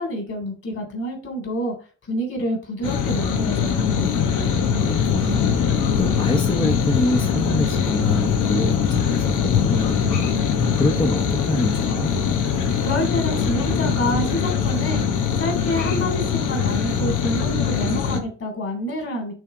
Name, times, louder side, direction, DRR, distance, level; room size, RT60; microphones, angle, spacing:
voice 1, 0.0-1.7 2.1-3.9 12.8-15.0 15.4-19.3, equal, 50° left, 2 dB, 3.4 m, -27 dB
sound 1, 2.8-18.2, left 7 dB, 80° left, 1.1 m, -22 dB
voice 2, 4.8-10.3 10.8-12.2, left 2 dB, 15° left, 1 dB, 0.9 m, -26 dB
6.3 x 3.4 x 5.0 m, 0.36 s
cardioid pair, 90°, 30 cm